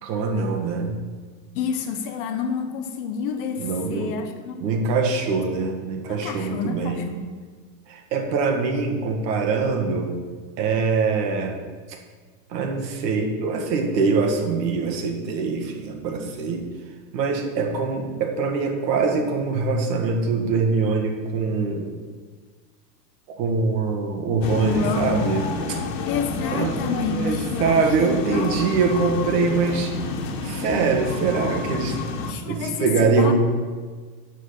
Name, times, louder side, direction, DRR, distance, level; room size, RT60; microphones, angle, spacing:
voice 1, 0.0-1.0 3.6-4.1 4.6-7.0 7.9-10.1 10.6-11.6 12.5-16.6 17.1-21.9 23.3-25.8 26.5-29.9 30.4-32.0 32.5-33.3, right 4 dB, 80° right, 2 dB, 1.9 m, -23 dB
voice 2, 1.5-4.6 6.1-7.3 24.6-25.2 26.1-28.5 32.3-32.9 33.1-33.3, left 6 dB, 35° left, 6 dB, 0.6 m, -29 dB
sound 1, 24.4-32.3, left 4 dB, 80° left, 1.4 m, -29 dB
8.7 x 6.3 x 5.8 m, 1.5 s
supercardioid pair, 175°, 49 cm